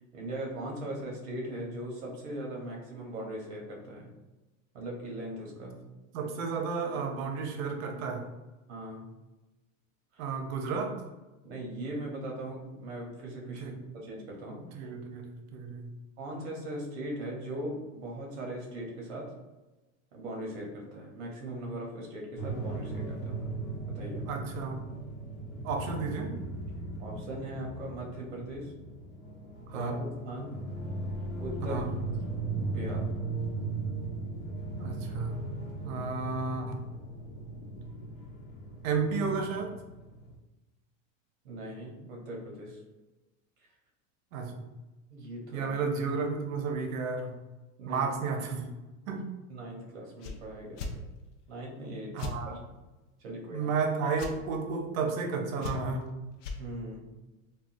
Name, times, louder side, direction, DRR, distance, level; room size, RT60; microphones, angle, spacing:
voice 1, 0.1-4.1 4.7-5.8 8.7-9.1 10.1-10.2 11.4-13.7 14.0-14.9 16.2-19.3 20.1-23.5 23.9-24.3 27.0-28.7 29.7-30.6 31.4-31.8 32.7-33.0 41.4-42.8 45.1-45.7 47.8-48.1 49.1-49.2 49.5-50.8 51.5-52.7 53.2-53.7 56.6-57.1, right 1 dB, 60° right, -1 dB, 1.0 m, -39 dB
voice 2, 6.1-8.2 10.2-11.0 13.6-13.7 14.7-15.9 24.3-24.8 25.6-26.3 29.7-29.9 31.7-31.9 34.8-35.4 35.8-36.8 38.8-39.7 44.3-44.7 45.5-47.4 47.9-48.7 49.1-49.3 52.1-52.5 53.5-56.1, right 4 dB, 90° right, 4 dB, 0.7 m, -32 dB
sound 1, 22.4-40.4, right 2 dB, 85° left, 1.0 m, -37 dB
sound 2, 50.2-50.4 50.8-50.9 52.2-52.4 54.2-54.3 55.6-56.0 56.4-56.6, left 3 dB, 65° left, 0.5 m, -36 dB
3.5 x 2.3 x 2.5 m, 1.1 s
supercardioid pair, 180°, 39 cm